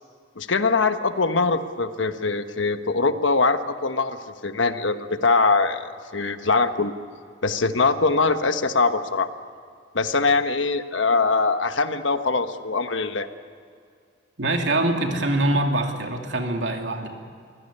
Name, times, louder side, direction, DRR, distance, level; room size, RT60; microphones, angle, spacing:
voice 1, 0.4-6.9 7.4-9.3 9.9-13.3, left 4 dB, 90° left, 9 dB, 1.3 m, -22 dB
voice 2, 14.4-17.1, right 1 dB, 75° right, 3 dB, 2.7 m, -24 dB
24.0 x 16.5 x 9.9 m, 2.2 s
head